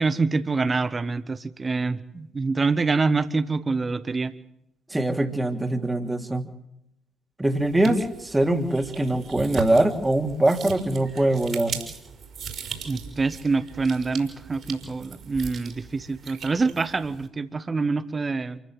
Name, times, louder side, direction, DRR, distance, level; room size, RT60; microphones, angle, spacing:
voice 1, 0.0-4.3 12.9-18.6, right 4 dB, 30° right, 14 dB, 1.3 m, -26 dB
voice 2, 4.9-6.5 7.4-11.8, right 1 dB, 15° right, 6 dB, 3.1 m, -23 dB
sound 1, 7.6-17.3, right 6 dB, 55° right, 5.3 m, -39 dB
28.0 x 15.5 x 7.7 m, 0.79 s
figure-of-eight pair, 45°, 0 cm